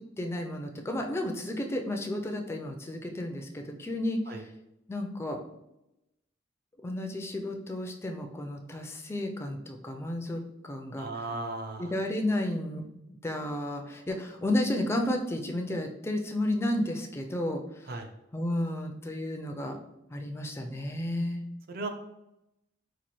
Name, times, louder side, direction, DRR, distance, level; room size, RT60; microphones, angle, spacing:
voice 1, 0.2-4.5 4.9-5.4 6.8-11.3 11.8-17.9 18.3-19.8 20.1-21.4, left 1 dB, 15° left, 3 dB, 0.3 m, -32 dB
voice 2, 11.0-11.9 17.9-18.1 21.7-21.9, right 2 dB, 50° right, 5 dB, 0.5 m, -36 dB
4.0 x 2.4 x 3.0 m, 0.88 s
head